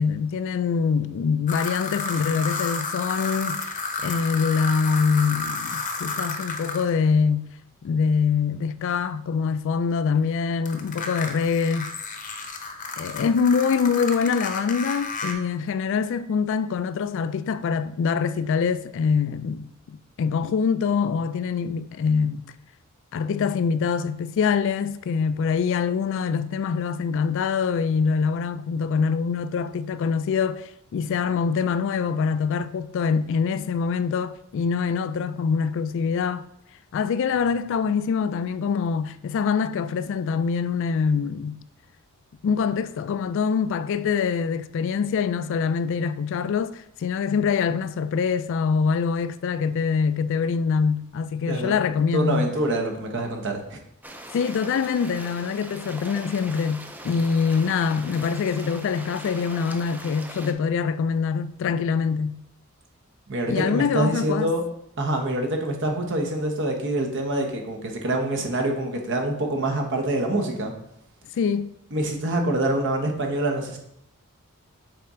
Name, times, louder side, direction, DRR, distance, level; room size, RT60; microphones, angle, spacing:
voice 1, 0.0-7.5 7.8-11.9 13.0-22.5 23.1-36.5 36.9-41.6 42.4-52.5 54.3-62.4 63.5-64.5 71.4-71.7, left 6 dB, 60° left, 0.3 m, -24 dB
sound 1, 1.5-6.9 10.7-15.3, left 3 dB, 35° left, 0.7 m, -31 dB
voice 2, 52.1-53.8 63.3-64.6 65.0-70.7 71.9-73.8, right 1 dB, 60° right, 1.1 m, -25 dB
sound 2, 54.0-60.5, right 1 dB, 10° right, 0.4 m, -41 dB
6.7 x 4.2 x 3.7 m
head